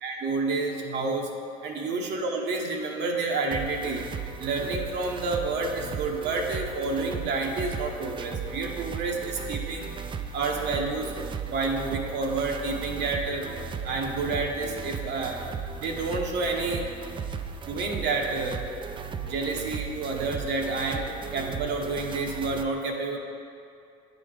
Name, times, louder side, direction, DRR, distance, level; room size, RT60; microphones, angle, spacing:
voice 1, 0.0-1.3 1.6-4.0 4.4-9.9 10.3-11.2 11.5-13.5 13.8-15.4 15.8-16.9 17.7-18.6 19.2-23.2, right 3 dB, 60° right, 0 dB, 0.9 m, -29 dB
sound 1, 3.5-22.6, right 6 dB, 25° right, 0.3 m, -36 dB
8.8 x 4.1 x 3.3 m, 2.4 s
supercardioid pair, 70°, 20 cm